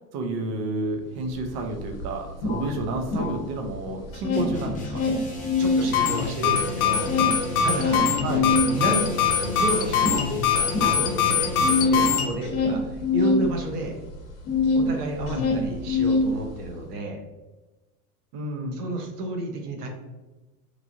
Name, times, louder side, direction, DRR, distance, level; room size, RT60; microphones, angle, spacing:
voice 1, 0.1-5.0 8.2-8.5 15.2-15.7 18.3-18.8, right 2 dB, 45° right, 3 dB, 0.6 m, -30 dB
sound 1, 1.4-1.5 1.7-3.7 4.0-5.9 6.2-14.9 15.2-16.7, left 3 dB, 45° left, 0.9 m, -25 dB
sound 2, 4.3-11.9, left 2 dB, 15° left, 0.7 m, -38 dB
voice 2, 5.6-7.1 7.6-8.1 8.7-9.1 9.4-10.1 10.4-11.5 11.8-14.0 14.7-17.2 18.7-19.9, right 1 dB, 90° right, 3 dB, 0.8 m, -31 dB
sound 3, 5.8-12.3, left 7 dB, 70° left, 0.7 m, -23 dB
3.1 x 2.4 x 2.5 m, 1.1 s
hypercardioid pair, 115°, 45 cm